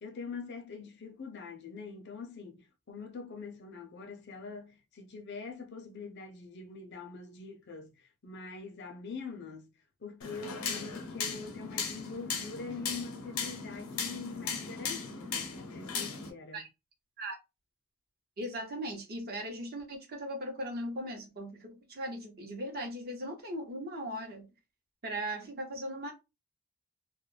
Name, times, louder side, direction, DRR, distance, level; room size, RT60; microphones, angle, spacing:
voice 1, 0.0-9.7 10.0-16.6, left 4 dB, 50° left, 0.5 m, -44 dB
sound 1, 10.2-16.3, left 5 dB, 80° left, 0.7 m, -37 dB
voice 2, 18.4-24.5 25.0-26.1, right 1 dB, 45° right, 0.8 m, -38 dB
2.2 x 2.1 x 3.1 m
head